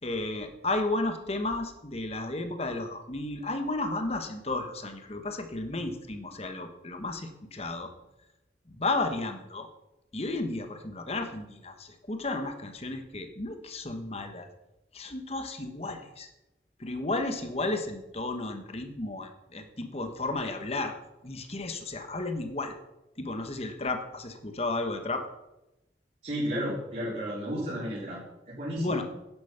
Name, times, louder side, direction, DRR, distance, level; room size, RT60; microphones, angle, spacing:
voice 1, 0.0-7.9 8.7-9.7 10.1-14.5 14.9-16.3 16.8-20.9 21.2-22.8 23.2-25.2 28.7-29.0, left 2 dB, 35° left, 6 dB, 1.3 m, -33 dB
voice 2, 26.2-28.2 28.5-29.0, equal, 40° right, -9 dB, 4.0 m, -33 dB
10.5 x 10.5 x 5.9 m, 0.95 s
head